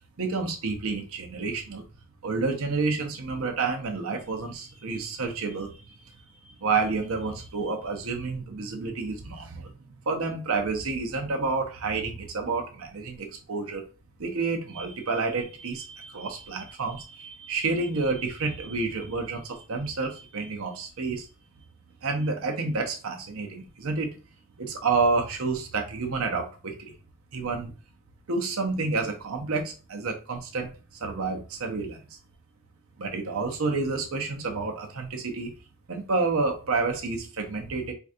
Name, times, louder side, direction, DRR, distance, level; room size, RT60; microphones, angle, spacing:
voice 1, 0.2-1.8 2.2-6.2 6.6-9.7 10.1-13.8 14.2-21.3 22.0-24.2 24.6-26.9 27.3-27.7 28.3-32.0 33.0-35.5 35.9-37.9, right 4 dB, 75° right, 2 dB, 0.8 m, -29 dB
4.7 x 2.4 x 2.7 m, 0.34 s
head